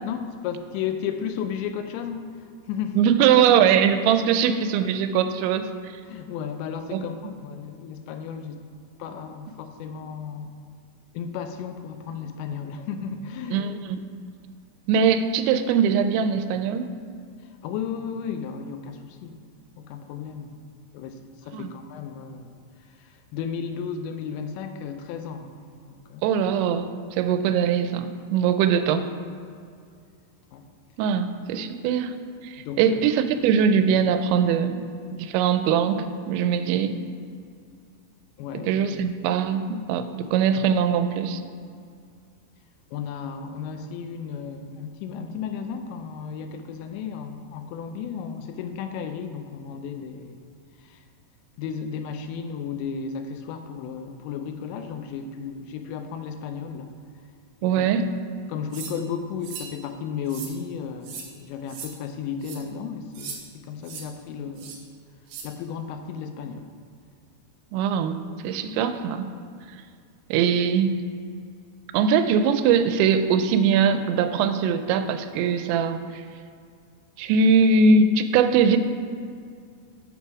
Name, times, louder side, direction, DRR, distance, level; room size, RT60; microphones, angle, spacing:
voice 1, 0.0-3.0 6.1-8.7 9.0-10.6 11.1-13.7 17.6-19.4 19.8-20.6 20.9-22.5 23.0-25.6 25.8-26.3 30.5-30.6 32.6-33.0 38.4-38.9 42.9-50.4 50.8-51.0 51.6-57.0 57.6-57.9 58.5-64.8 65.4-66.7, left 7 dB, 85° left, 7 dB, 2.8 m, -34 dB
voice 2, 3.0-5.9 6.9-7.1 13.5-14.1 14.9-16.9 21.5-21.7 26.2-26.9 27.2-29.1 31.0-32.1 32.4-34.8 35.1-36.9 38.6-41.4 57.6-58.1 67.7-69.3 70.3-71.0 71.9-76.2 77.2-78.8, right 6 dB, 90° right, 9 dB, 2.9 m, -21 dB
sound 1, 58.7-59.0 59.4-59.7 60.3-60.5 61.0-61.3 61.7-61.9 62.4-62.6 63.1-63.4 63.8-64.0 64.6-64.8 65.3-65.5, right 6 dB, 75° right, 2.0 m, -38 dB
7.5 x 6.9 x 4.7 m, 2.3 s
omnidirectional pair, 5.1 m